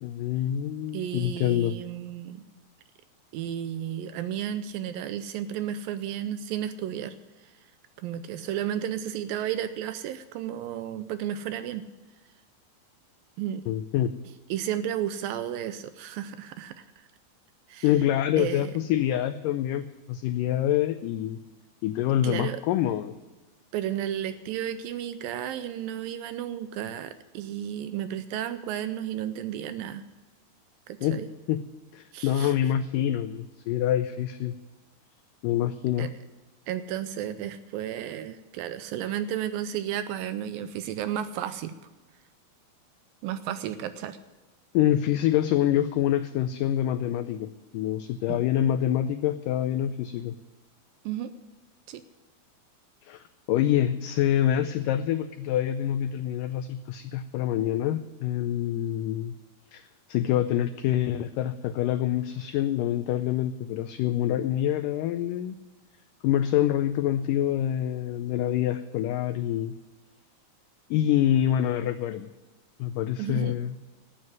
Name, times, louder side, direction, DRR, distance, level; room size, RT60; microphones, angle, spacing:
voice 1, 0.0-1.8 13.7-14.1 17.8-21.4 21.8-23.1 31.0-31.6 31.9-34.5 35.4-36.1 44.7-50.4 53.0-59.3 59.7-65.6 66.2-69.7 70.9-72.3 72.8-73.8, left 11 dB, 90° left, 11 dB, 1.9 m, -26 dB
voice 2, 0.9-2.4 3.3-7.1 7.4-7.5 8.0-11.8 13.4-13.6 14.5-16.9 17.7-17.9 18.4-18.7 22.2-22.6 23.7-30.0 30.9-31.3 32.1-32.5 36.0-36.1 36.7-41.8 43.2-44.2 48.3-48.4 51.1-51.3 51.9-52.0 73.2-73.5, right 10 dB, 80° right, 12 dB, 2.2 m, -33 dB
12.5 x 8.9 x 9.4 m, 1.2 s
omnidirectional pair, 4.4 m